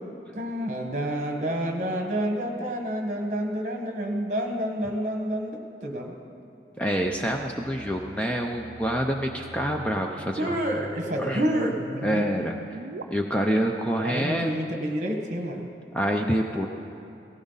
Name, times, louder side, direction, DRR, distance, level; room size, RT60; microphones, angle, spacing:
voice 1, 0.3-6.2 10.4-12.2 14.0-15.7, equal, 40° right, 2 dB, 1.5 m, -29 dB
voice 2, 6.8-10.6 11.2-11.7 12.0-12.6 13.1-14.6 15.9-16.7, equal, 5° left, 2 dB, 0.5 m, -27 dB
sound 1, 7.1-13.0, right 3 dB, 85° right, 0.6 m, -43 dB
17.5 x 15.5 x 4.1 m, 2.6 s
head